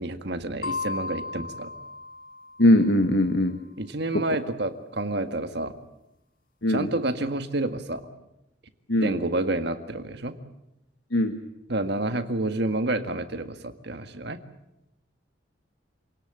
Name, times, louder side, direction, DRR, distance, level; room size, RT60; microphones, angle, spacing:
voice 1, 0.0-1.7 3.8-5.8 6.7-8.0 9.0-10.4 11.7-14.4, right 2 dB, 60° right, 8 dB, 1.8 m, -29 dB
sound 1, 0.6-3.1, left 3 dB, 45° left, 1.5 m, -35 dB
voice 2, 2.6-3.6 6.6-6.9 8.9-9.1 11.1-11.4, left 1 dB, 65° left, 7 dB, 1.4 m, -20 dB
28.0 x 18.0 x 8.8 m, 0.88 s
head